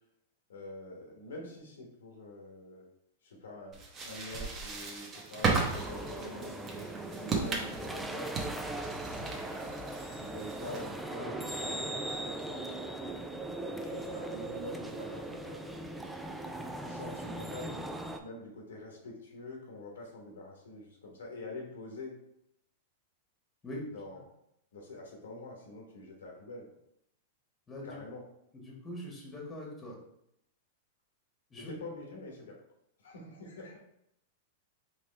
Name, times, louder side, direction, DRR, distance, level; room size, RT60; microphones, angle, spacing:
voice 1, 0.5-2.9 3.2-6.8 7.2-8.4 9.1-9.8 10.1-13.1 13.6-16.0 16.9-22.2 23.9-24.3 24.7-26.7 27.8-28.2 31.6-32.6 33.0-33.8, left 2 dB, 85° left, 0 dB, 1.1 m, -46 dB
sound 1, 3.7-11.0, right 4 dB, 30° right, 0.8 m, -36 dB
sound 2, 5.8-18.2, right 2 dB, 5° right, 0.4 m, -39 dB
voice 2, 27.7-28.0 28.6-29.9 31.5-31.7, left 1 dB, 15° left, -2 dB, 1.4 m, -42 dB
4.1 x 3.0 x 3.2 m, 0.78 s
hypercardioid pair, 125°, 0 cm